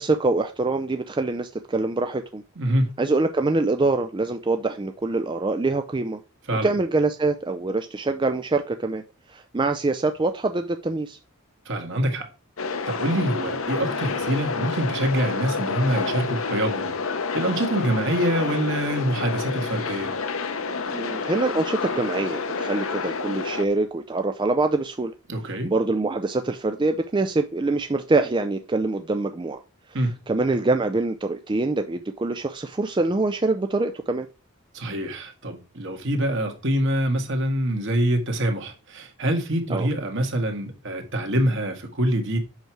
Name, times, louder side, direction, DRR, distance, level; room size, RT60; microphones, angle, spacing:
voice 1, 0.0-2.4 3.0-6.2 6.6-11.2 20.9-25.1 25.6-29.6 30.3-34.3 39.7-39.9, right 3 dB, 20° right, 0.4 m, -24 dB
voice 2, 2.6-2.9 6.5-6.7 11.7-12.3 12.9-16.9 17.3-20.1 25.3-25.7 29.9-30.2 34.7-42.4, right 1 dB, 60° right, 1.9 m, -25 dB
sound 1, 12.6-23.6, left 4 dB, 65° left, 0.8 m, -29 dB
8.1 x 6.1 x 4.6 m
head